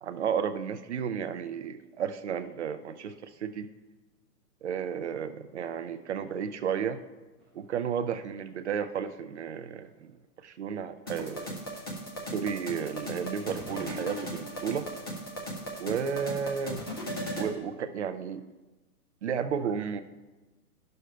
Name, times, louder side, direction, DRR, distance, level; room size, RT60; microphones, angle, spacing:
voice 1, 0.0-3.7 4.6-7.0 7.5-10.1 10.4-11.6 12.3-14.9 15.8-16.8 17.3-18.4 19.2-20.0, right 7 dB, 50° right, 10 dB, 0.4 m, -33 dB
sound 1, 7.3-8.2 8.6-8.7 9.3-10.8 11.1-12.3 12.7-15.0 15.5-16.1, right 1 dB, ahead, 0.8 m, -56 dB
sound 2, 11.1-17.5, equal, 15° left, 0.4 m, -37 dB
11.5 x 6.4 x 2.2 m, 1.2 s
hypercardioid pair, 140°, 47 cm